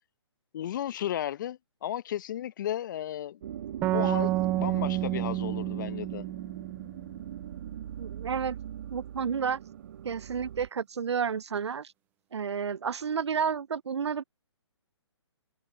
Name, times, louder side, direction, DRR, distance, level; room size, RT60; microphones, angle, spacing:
voice 1, 0.5-3.4 3.9-6.2, left 11 dB, 45° left, 1.0 m, -34 dB
sound 1, 3.4-10.7, right 10 dB, 45° right, 2.4 m, -40 dB
sound 2, 3.8-7.3, right 15 dB, 10° right, 0.4 m, -30 dB
voice 2, 8.0-8.6 8.9-9.6 10.0-11.9 12.3-14.2, right 6 dB, 65° right, 0.7 m, -31 dB
figure-of-eight pair, 135°, 15 cm